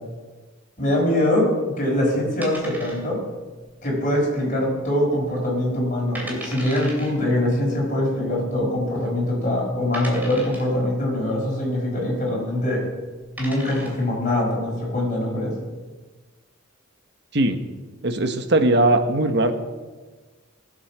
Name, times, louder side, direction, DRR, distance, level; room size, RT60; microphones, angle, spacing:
voice 1, 0.8-3.2 3.8-12.8 13.4-15.5, left 1 dB, 40° left, -2 dB, 5.2 m, -23 dB
sound 1, 2.4-3.4 3.6-3.7 4.3-4.8 5.1-5.2 5.8-5.9 6.2-7.1 8.2-8.3 9.0-9.1 9.9-10.8 12.6-12.8 13.2-14.1, right 1 dB, 10° right, 2.7 m, -37 dB
voice 2, 18.0-19.5, right 1 dB, 55° right, 7 dB, 1.2 m, -19 dB
19.0 x 8.1 x 6.1 m, 1.3 s
head